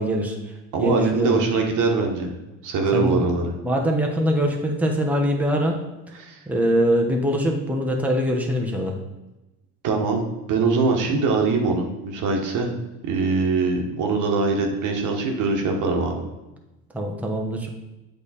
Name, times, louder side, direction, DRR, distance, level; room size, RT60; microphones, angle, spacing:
voice 1, 0.0-1.4 2.9-3.3 3.6-5.8 6.5-9.0 16.9-17.7, equal, 5° right, 0 dB, 1.1 m, -23 dB
voice 2, 0.7-2.3 2.6-3.5 6.2-6.4 9.8-10.2 10.5-12.7 13.0-16.2, right 4 dB, 60° right, 2 dB, 1.4 m, -22 dB
8.0 x 3.5 x 4.2 m, 1.0 s
supercardioid pair, 80°, 34 cm